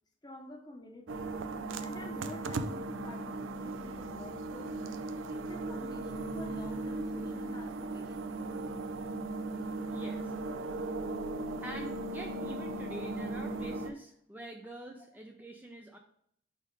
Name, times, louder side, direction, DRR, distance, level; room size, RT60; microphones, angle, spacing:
voice 1, 0.2-1.3 1.8-4.8 5.3-8.3, left 1 dB, 20° left, 3 dB, 0.8 m, -48 dB
sound 1, 1.1-13.9, right 2 dB, 85° right, 0.5 m, -37 dB
voice 2, 9.9-10.3 11.6-16.0, right 1 dB, 10° right, 2 dB, 0.4 m, -46 dB
5.0 x 4.2 x 5.1 m, 0.69 s
head